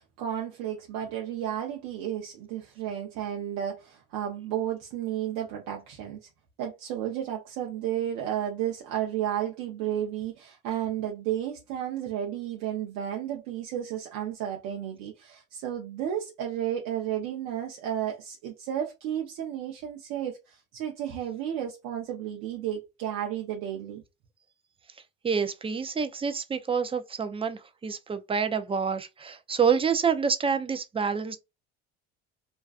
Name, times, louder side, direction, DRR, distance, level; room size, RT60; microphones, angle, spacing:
voice 1, 0.0-6.3 6.6-24.0, right 10 dB, 75° right, 0.7 m, -32 dB
voice 2, 25.2-31.4, right 6 dB, 20° right, 0.4 m, -27 dB
2.4 x 2.3 x 2.3 m
hypercardioid pair, 75°, 32 cm